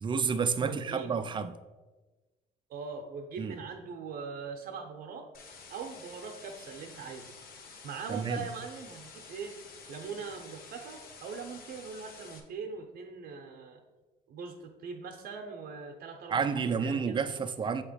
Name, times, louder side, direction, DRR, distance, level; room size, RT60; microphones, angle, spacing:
voice 1, 0.0-1.5 3.4-3.6 8.1-8.4 16.3-17.8, right 5 dB, 30° right, 10 dB, 0.4 m, -30 dB
voice 2, 0.6-1.2 2.7-5.3 5.7-7.3 7.8-9.6 9.9-13.8 14.3-17.4, right 5 dB, 65° right, 3 dB, 0.7 m, -41 dB
sound 1, 5.3-12.4, left 5 dB, 65° left, 1.0 m, -50 dB
7.1 x 2.9 x 5.0 m, 1.2 s
cardioid pair, 110°, 17 cm